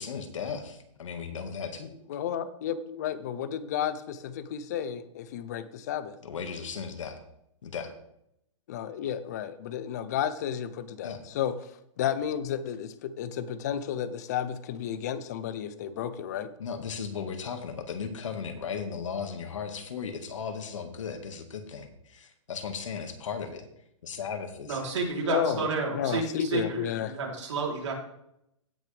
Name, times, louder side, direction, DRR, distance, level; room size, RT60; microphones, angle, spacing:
voice 1, 0.0-1.9 6.2-7.2 7.6-7.9 11.0-11.2 16.6-23.7 24.0-24.8, left 6 dB, 75° left, 6 dB, 1.9 m, -36 dB
voice 2, 2.1-6.1 8.7-11.6 12.0-16.5 25.2-27.1, left 9 dB, 35° left, 14 dB, 0.6 m, -32 dB
voice 3, 24.7-26.8 27.1-27.9, right 4 dB, 65° right, -1 dB, 3.6 m, -30 dB
16.5 x 6.2 x 3.4 m, 0.79 s
hypercardioid pair, 170°, 16 cm